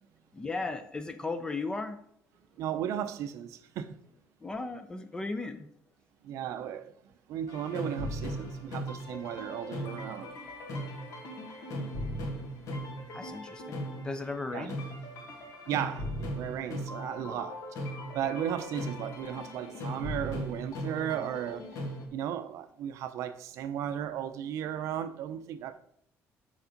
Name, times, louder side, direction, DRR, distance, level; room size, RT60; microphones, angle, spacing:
voice 1, 0.3-2.0 4.4-5.7 13.1-13.8 14.0-14.8, left 3 dB, 15° left, 0.6 m, -36 dB
voice 2, 2.6-4.0 6.2-7.0 7.3-10.3 14.5-14.7 15.7-21.6 22.1-25.8, right 10 dB, 70° right, 0.6 m, -35 dB
sound 1, 7.5-22.1, equal, 70° left, 1.8 m, -38 dB
7.2 x 4.7 x 5.2 m
cardioid pair, 150°, 5 cm